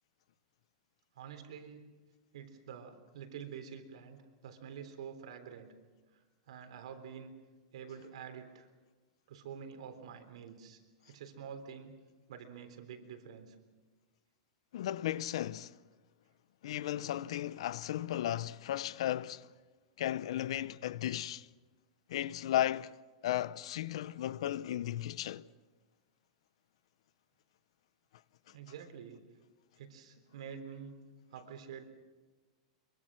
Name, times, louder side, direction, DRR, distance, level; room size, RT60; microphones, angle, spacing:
voice 1, 1.2-1.8 2.3-5.7 6.1-7.3 7.7-8.7 9.3-12.0 12.3-13.6 28.5-29.2 29.8-30.9 31.3-31.8, right 7 dB, 70° right, 3.6 m, -48 dB
voice 2, 14.7-15.8 16.6-19.5 20.0-21.5 22.1-22.9 23.2-25.5, left 12 dB, 65° left, 0.6 m, -35 dB
24.0 x 23.5 x 6.2 m
supercardioid pair, 180°, 3 cm